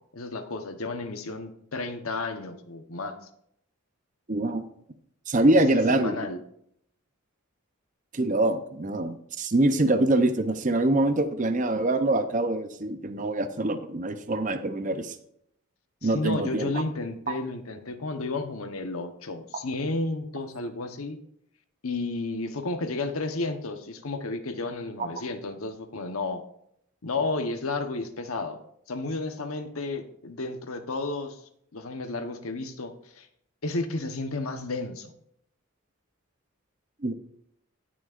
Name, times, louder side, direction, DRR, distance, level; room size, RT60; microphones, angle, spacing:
voice 1, 0.2-3.2 5.5-6.4 16.0-21.2 21.8-26.4 27.0-28.6 28.9-31.4 31.7-33.3 33.6-35.1, left 3 dB, 85° left, 7 dB, 1.1 m, -32 dB
voice 2, 4.3-4.7 5.3-6.1 8.1-15.2 16.0-16.7 37.0-37.1, right 2 dB, 35° right, 8 dB, 0.7 m, -24 dB
18.0 x 6.3 x 2.5 m, 0.71 s
head